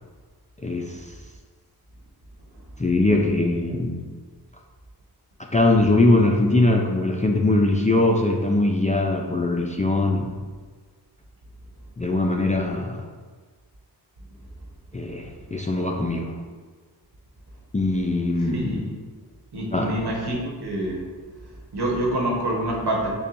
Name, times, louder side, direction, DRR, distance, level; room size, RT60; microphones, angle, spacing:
voice 1, 0.6-1.0 2.8-4.1 5.5-10.3 12.0-13.0 14.9-16.3 17.7-18.9 19.7-19.9, left 2 dB, 20° left, 0 dB, 0.3 m, -21 dB
voice 2, 19.5-21.0 21.7-23.1, right 1 dB, 70° right, -2 dB, 1.1 m, -26 dB
6.8 x 2.3 x 2.5 m, 1.5 s
cardioid pair, 60°, 40 cm